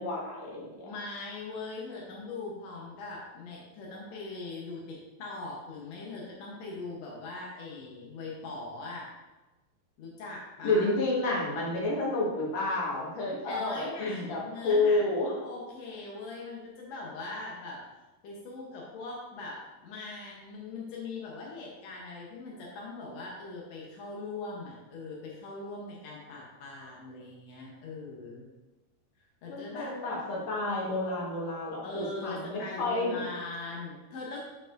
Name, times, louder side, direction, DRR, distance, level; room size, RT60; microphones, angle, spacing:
voice 1, 0.0-0.9 10.6-15.3 29.5-33.2, left 2 dB, 55° left, -4 dB, 2.3 m, -30 dB
voice 2, 0.8-9.1 10.0-10.9 13.4-17.8 18.2-28.5 29.4-29.9 31.8-34.4, left 3 dB, 75° left, -3 dB, 1.6 m, -41 dB
10.0 x 4.7 x 2.5 m, 1.1 s
omnidirectional pair, 4.4 m